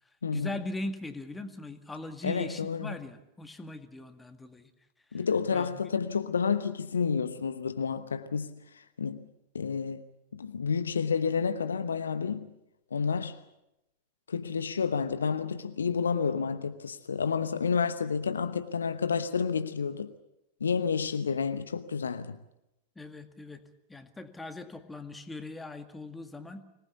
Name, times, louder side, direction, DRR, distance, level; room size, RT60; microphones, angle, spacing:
voice 1, 0.3-4.7 5.1-5.2 5.5-5.9 23.0-23.6 23.9-26.6, left 2 dB, 10° left, 2.0 m, -40 dB
voice 2, 2.2-2.9 5.1-9.3 9.5-10.0 10.3-12.5 12.9-13.4 14.3-20.1 20.6-22.4, left 6 dB, 70° left, 1.0 m, -30 dB
25.0 x 19.0 x 8.3 m
figure-of-eight pair, 90°, 0 cm